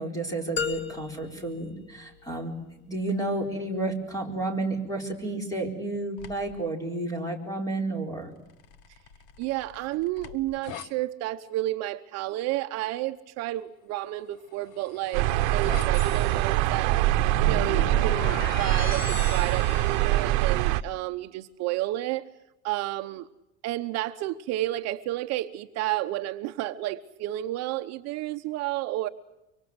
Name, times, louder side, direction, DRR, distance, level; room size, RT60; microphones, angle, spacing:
voice 1, 0.0-2.5 2.9-8.3, right 2 dB, 10° left, 3 dB, 4.3 m, -31 dB
sound 1, 0.6-2.6, left 7 dB, 30° left, 1.7 m, -35 dB
sound 2, 6.2-6.6 8.5-10.9 14.4-20.8, left 7 dB, 65° left, 1.7 m, -40 dB
voice 2, 9.4-15.3 15.5-17.0 17.4-22.2 22.6-23.3 23.6-29.1, right 15 dB, 50° right, 8 dB, 0.9 m, -31 dB
sound 3, 15.1-20.8, right 16 dB, 80° right, 0.9 m, -24 dB
24.5 x 24.5 x 8.0 m, 0.92 s
cardioid pair, 170°, 34 cm